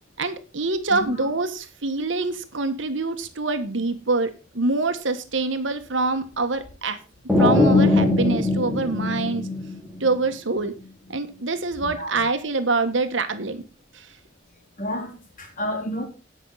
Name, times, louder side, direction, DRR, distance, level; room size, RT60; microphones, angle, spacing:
voice 1, 0.2-7.0 7.4-9.5 10.0-10.7 11.1-13.6 13.9-14.1, right 3 dB, 80° right, 9 dB, 1.5 m, -25 dB
voice 2, 0.9-1.3 11.8-12.2 14.8-16.0, equal, 45° left, 1 dB, 3.9 m, -31 dB
sound 1, 7.3-10.1, left 2 dB, ahead, 2.0 m, -20 dB
17.0 x 6.2 x 4.1 m, 0.31 s
head